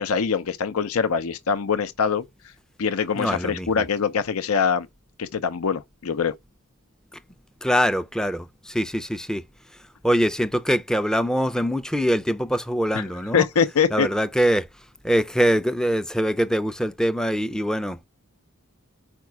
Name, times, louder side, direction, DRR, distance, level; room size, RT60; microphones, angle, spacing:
voice 1, 0.0-2.2 2.8-4.9 5.2-6.3 12.9-14.1, left 6 dB, 80° left, 0.6 m, -23 dB
voice 2, 3.2-3.7 7.6-9.4 10.0-13.5 13.9-14.7 15.0-18.0, equal, 5° left, 0.4 m, -23 dB
5.2 x 4.7 x 4.5 m
head